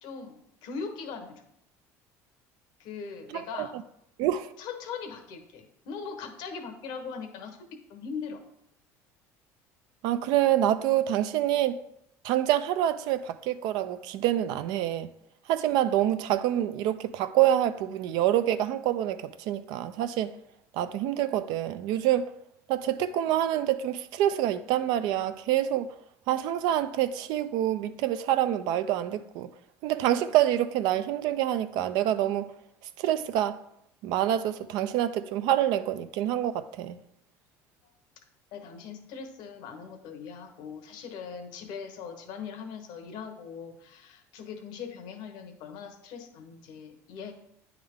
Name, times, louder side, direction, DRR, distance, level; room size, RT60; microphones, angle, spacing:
voice 1, 0.0-1.4 2.8-3.7 4.6-8.4 38.5-47.3, left 6 dB, 70° left, 1.1 m, -40 dB
voice 2, 3.3-3.7 4.2-4.5 10.0-11.8 12.2-15.1 15.5-20.3 20.7-22.3 22.7-25.9 26.3-29.5 29.8-32.5 33.0-33.6 34.0-37.0, right 12 dB, 70° right, 0.4 m, -26 dB
9.2 x 3.6 x 3.6 m
supercardioid pair, 85°, 8 cm